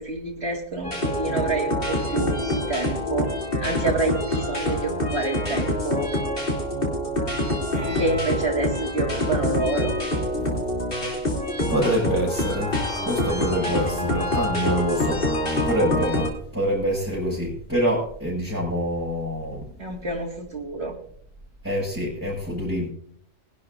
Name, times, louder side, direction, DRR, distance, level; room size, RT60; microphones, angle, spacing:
voice 1, 0.0-3.3 3.6-6.1 8.0-9.9 19.8-21.0, right 3 dB, 50° right, 0 dB, 2.3 m, -28 dB
sound 1, 0.8-16.3, left 1 dB, 45° left, 3.3 m, -26 dB
voice 2, 7.7-8.2 10.4-10.9 11.7-19.6 21.6-22.9, equal, 10° right, -8 dB, 5.8 m, -26 dB
21.5 x 11.5 x 2.6 m, 0.64 s
omnidirectional pair, 1.4 m